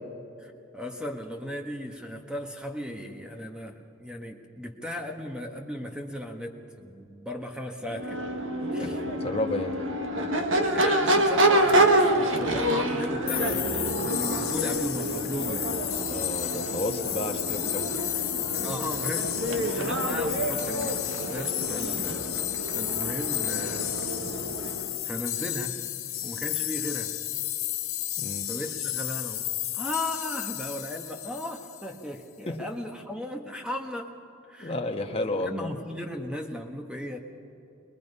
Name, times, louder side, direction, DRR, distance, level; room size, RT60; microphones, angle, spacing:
voice 1, 0.4-8.2 8.7-9.0 10.7-15.7 18.5-21.0 21.3-22.3 22.7-24.0 25.0-25.8 26.2-27.2 28.5-29.4 29.7-34.1 34.5-34.8 35.4-37.2, left 1 dB, 5° right, 3 dB, 1.4 m, -36 dB
Crowd / Race car auto racing / Accelerating revving vroom, 7.9-25.0, right 1 dB, 65° right, 1.5 m, -27 dB
voice 2, 8.8-9.8 16.0-18.0 28.2-28.5 32.5-32.6 34.6-35.7, left 1 dB, 30° left, 2 dB, 1.3 m, -32 dB
sound 1, 13.3-32.0, left 15 dB, 80° left, 2.1 m, -32 dB
22.5 x 21.5 x 5.5 m, 2.9 s
head